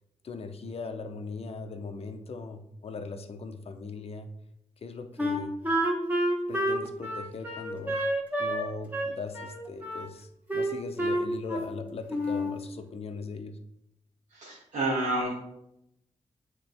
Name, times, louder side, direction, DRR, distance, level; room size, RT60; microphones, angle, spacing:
voice 1, 0.2-4.3 4.8-5.5 6.5-8.0 8.4-13.6, left 4 dB, 55° left, 6 dB, 0.6 m, -39 dB
Wind instrument woodwind instrument, 5.2-8.7 8.9-10.1 10.5-11.8 12.1-12.6, equal, 15° right, 1.3 m, -29 dB
voice 2, 14.3-15.3, right 2 dB, 85° right, -6 dB, 1.5 m, -29 dB
8.6 x 3.8 x 3.4 m, 0.80 s
wide cardioid pair, 100°, 13 cm